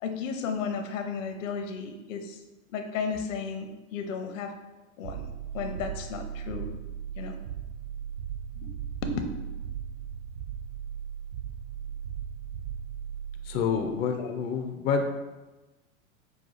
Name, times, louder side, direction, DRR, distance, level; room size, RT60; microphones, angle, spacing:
voice 1, 0.0-2.4 2.7-4.5 5.0-5.2 5.5-6.8 7.2-7.4 8.6-8.7 9.0-9.2 14.2-14.3, left 5 dB, 70° left, 6 dB, 0.8 m, -34 dB
sound 1, 5.0-14.1, right 8 dB, 60° right, 0.5 m, -37 dB
voice 2, 13.4-15.1, left 6 dB, 25° left, 4 dB, 0.3 m, -28 dB
5.5 x 2.3 x 3.8 m, 1.1 s
hypercardioid pair, 95°, 40 cm